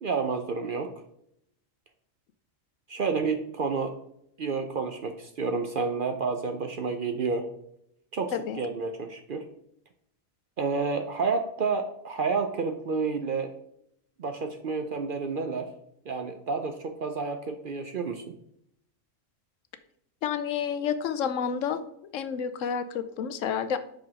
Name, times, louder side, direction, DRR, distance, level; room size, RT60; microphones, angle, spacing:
voice 1, 0.0-0.9 2.9-4.0 4.4-7.5 8.1-9.5 10.6-13.5 14.2-15.7 16.1-18.3, right 4 dB, 55° right, 7 dB, 0.6 m, -30 dB
voice 2, 20.2-21.8 22.1-23.8, left 7 dB, 75° left, 10 dB, 1.0 m, -29 dB
5.8 x 5.1 x 4.7 m, 0.75 s
omnidirectional pair, 1.4 m